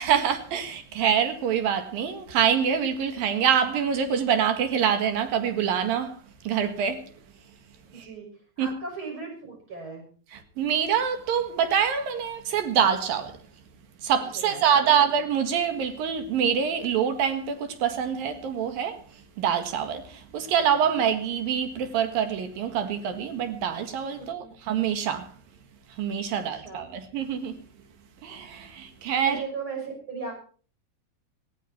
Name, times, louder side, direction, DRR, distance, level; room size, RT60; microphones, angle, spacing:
voice 1, 0.0-6.2 6.4-7.1 8.0-8.1 8.6-8.7 10.6-13.4 14.0-19.0 19.4-25.3 26.0-27.6 28.2-29.4, right 8 dB, 75° right, 3.5 m, -25 dB
voice 2, 7.9-8.3 8.6-10.0 14.3-15.0 24.4-24.5 26.4-26.9 29.2-30.3, right 4 dB, 35° right, 7.1 m, -37 dB
18.0 x 15.0 x 4.4 m
omnidirectional pair, 4.1 m